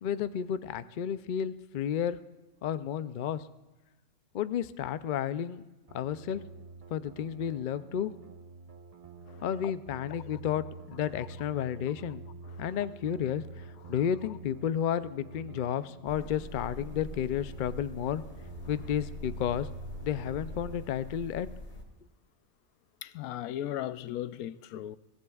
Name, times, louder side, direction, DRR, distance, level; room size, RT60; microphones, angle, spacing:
voice 1, 0.0-2.2 2.6-3.4 4.3-5.7 5.9-6.4 6.9-8.1 9.4-12.2 12.6-18.2 18.7-19.7 20.0-21.5, left 9 dB, 70° left, 0.4 m, -32 dB
sound 1, 5.9-20.8, right 3 dB, 30° right, 0.8 m, -47 dB
voice 2, 9.3-9.7 10.2-10.4 12.5-12.7 13.8-13.9 23.0-25.0, left 12 dB, 90° left, 1.0 m, -38 dB
sound 2, 16.1-21.8, left 1 dB, 50° left, 1.8 m, -44 dB
22.0 x 15.5 x 2.4 m
omnidirectional pair, 1.5 m